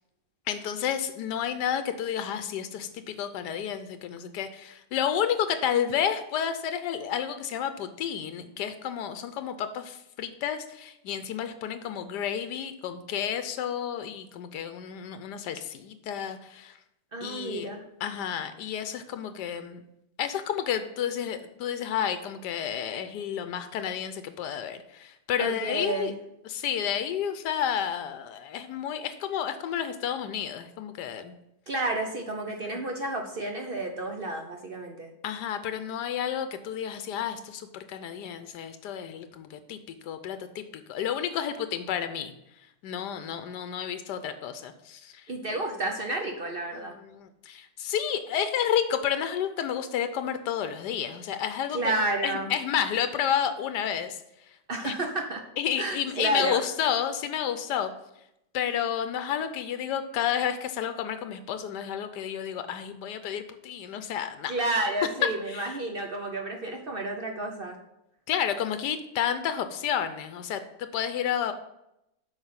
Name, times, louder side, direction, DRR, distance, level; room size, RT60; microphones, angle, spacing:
voice 1, 0.5-16.7 17.2-17.7 18.0-19.8 20.2-26.1 26.4-31.3 32.6-32.8 35.2-42.3 42.8-45.2 47.1-51.9 52.2-54.2 54.8-54.9 55.6-57.9 58.5-64.5 65.5-65.6 68.3-71.5, left 9 dB, 85° left, 9 dB, 1.2 m, -31 dB
voice 2, 17.1-17.9 25.4-26.1 31.7-35.1 45.3-47.0 51.7-52.5 54.7-55.5 55.8-56.6 64.5-67.8, right 2 dB, 45° right, 3 dB, 0.7 m, -31 dB
8.0 x 5.3 x 5.6 m, 0.85 s
omnidirectional pair, 1.8 m